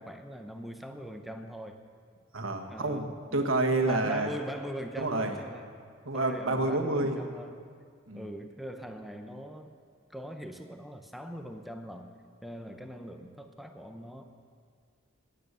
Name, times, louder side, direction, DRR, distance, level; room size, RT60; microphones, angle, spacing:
voice 1, 0.0-1.8 2.7-3.5 3.8-5.7 6.1-7.7 8.1-9.7 10.1-12.1 12.4-14.2, equal, ahead, 5 dB, 0.7 m, -41 dB
voice 2, 2.3-3.0 3.3-4.3 5.0-5.4 6.0-7.2 8.1-8.3, right 2 dB, 85° right, 4 dB, 1.6 m, -28 dB
19.0 x 9.2 x 6.8 m, 2.1 s
head